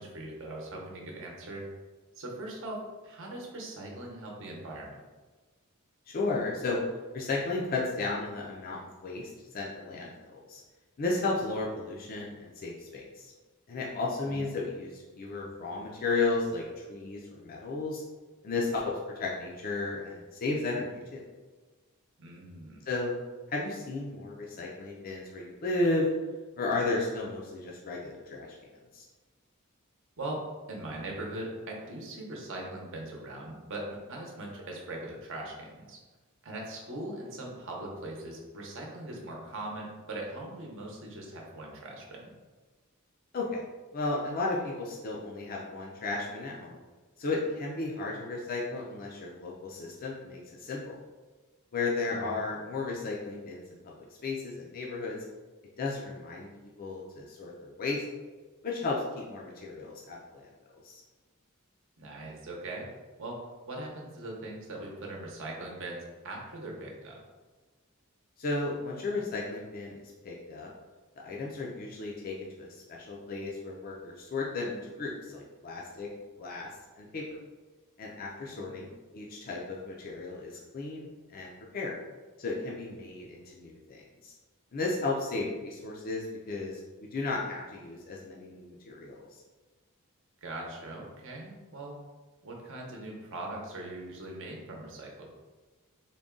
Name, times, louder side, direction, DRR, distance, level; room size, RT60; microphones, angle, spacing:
voice 1, 0.0-1.7 2.1-4.9 14.3-14.5 22.2-22.8 30.2-30.4 30.7-36.0 36.4-42.3 52.1-52.3 62.0-62.9 63.2-67.2 78.5-78.9 90.4-92.0 92.4-95.3, right 1 dB, 60° right, -1 dB, 0.8 m, -40 dB
voice 2, 6.1-6.8 7.1-10.1 10.5-10.6 11.0-13.3 13.7-18.0 18.4-21.2 22.9-23.2 23.5-26.1 26.6-28.5 28.9-29.1 43.3-43.6 43.9-46.8 47.2-50.9 51.7-53.9 54.2-55.2 55.8-58.0 58.6-60.5 60.8-61.0 68.4-70.7 71.2-76.1 76.4-76.7 77.0-77.4 78.0-78.9 79.1-81.9 82.4-84.3 84.7-89.4, left 3 dB, 40° left, -3 dB, 0.5 m, -34 dB
3.7 x 2.2 x 3.6 m, 1.3 s
head